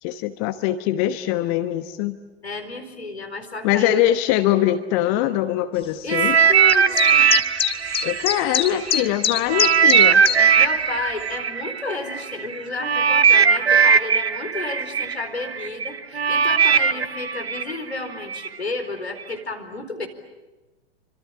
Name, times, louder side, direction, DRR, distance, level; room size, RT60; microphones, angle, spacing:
voice 1, 0.0-2.2 3.6-6.4 8.0-10.2, left 13 dB, 35° left, 10 dB, 1.1 m, -22 dB
voice 2, 2.4-4.0 6.0-7.3 10.6-20.1, left 3 dB, 75° left, 6 dB, 4.4 m, -32 dB
sound 1, 6.1-9.0 9.5-18.5 19.2-19.3, right 6 dB, 75° right, 1.0 m, -19 dB
sound 2, 6.7-10.4, left 8 dB, 15° left, 1.6 m, -23 dB
27.0 x 25.5 x 8.4 m, 1.2 s
figure-of-eight pair, 105°, 32 cm